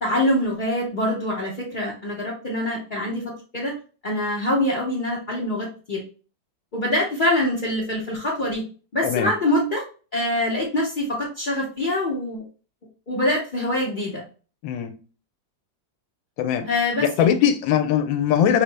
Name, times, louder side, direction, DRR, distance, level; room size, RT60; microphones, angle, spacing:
voice 1, 0.0-3.7 4.0-6.0 6.7-8.6 8.9-9.8 10.1-12.4 13.1-14.2 16.6-17.4, left 1 dB, 65° left, 0.4 m, -24 dB
voice 2, 14.6-14.9 16.4-16.7 17.0-18.6, left 9 dB, 85° left, 1.3 m, -21 dB
5.3 x 2.0 x 3.2 m
omnidirectional pair, 2.0 m